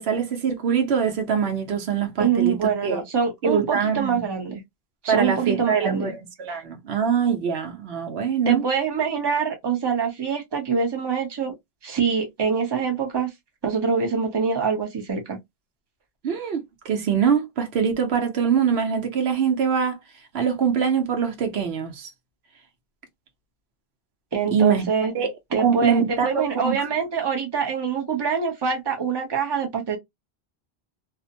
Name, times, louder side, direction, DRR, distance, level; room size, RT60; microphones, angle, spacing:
voice 1, 0.0-3.0 3.4-4.2 5.1-8.6 16.2-20.0 20.3-22.1 24.5-24.9 25.1-25.3 25.6-26.8, right 7 dB, 90° right, 1.0 m, -23 dB
voice 2, 2.2-4.6 5.0-6.1 6.5-6.6 8.5-11.5 11.8-13.3 13.6-15.4 24.3-25.1 25.5-30.0, right 6 dB, 25° right, 0.7 m, -24 dB
2.5 x 2.1 x 2.7 m
omnidirectional pair, 1.0 m